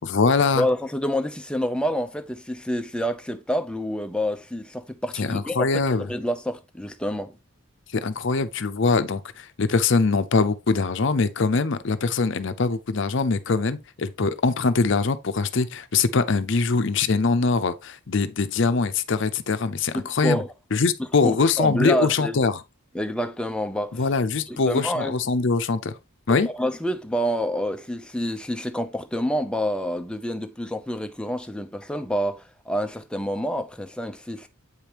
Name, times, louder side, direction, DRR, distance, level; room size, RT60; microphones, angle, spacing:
voice 1, 0.0-0.7 5.2-6.1 7.9-20.4 20.7-22.6 23.9-25.9 26.3-26.5, left 4 dB, 60° left, 0.6 m, -23 dB
voice 2, 0.5-7.4 19.9-20.5 21.2-22.4 22.9-24.0 24.5-25.2 26.3-34.5, equal, 5° left, 0.6 m, -28 dB
8.1 x 5.1 x 2.9 m
head